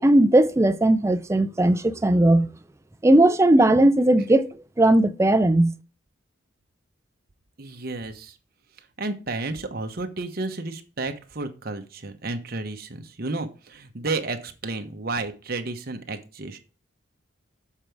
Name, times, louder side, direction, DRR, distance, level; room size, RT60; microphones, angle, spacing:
voice 1, 0.0-2.5 3.0-4.5 4.8-5.7, right 1 dB, 15° right, 0.4 m, -18 dB
voice 2, 7.6-8.4 8.8-16.6, right 3 dB, 50° right, 1.0 m, -32 dB
7.4 x 4.6 x 4.9 m
head